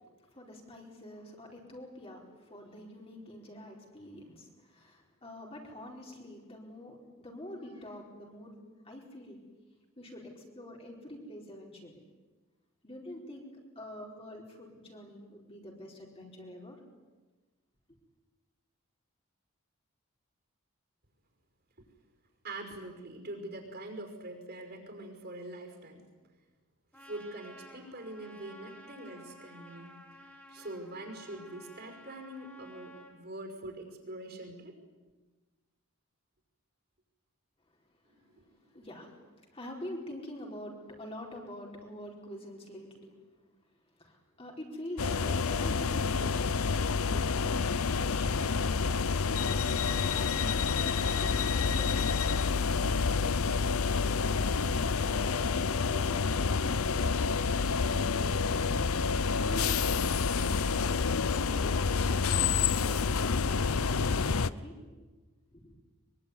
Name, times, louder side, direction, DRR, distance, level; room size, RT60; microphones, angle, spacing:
voice 1, 0.3-9.4 10.0-12.0 12.8-16.8 38.7-43.1 44.0-48.3 49.9-54.7 56.6-57.1 57.8-58.5 59.4-64.8 65.5-65.8, left 1 dB, 25° left, -1 dB, 4.7 m, -46 dB
voice 2, 22.4-26.0 26.9-30.2 30.5-34.7 38.0-38.5 38.7-38.8, right 1 dB, 45° right, 4 dB, 5.7 m, -44 dB
Trumpet, 26.9-33.2, equal, 10° left, 4.7 m, -53 dB
sound 1, 45.0-64.5, left 5 dB, 80° left, 0.8 m, -28 dB
24.0 x 24.0 x 9.9 m, 1.3 s
head